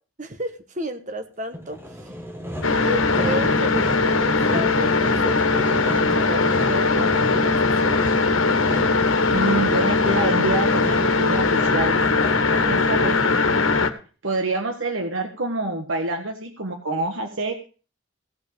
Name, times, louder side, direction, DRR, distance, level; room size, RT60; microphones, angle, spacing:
voice 1, 0.2-2.1 2.7-8.1 12.6-12.9, equal, 40° right, 8 dB, 1.4 m, -32 dB
Sawing, 1.5-13.6, equal, 10° right, 1.4 m, -37 dB
sound 1, 2.6-13.9, left 3 dB, 85° left, 1.4 m, -20 dB
voice 2, 9.3-12.0 12.7-13.6 14.2-17.7, right 2 dB, 80° right, 5 dB, 1.5 m, -27 dB
17.0 x 5.7 x 6.6 m, 0.37 s
head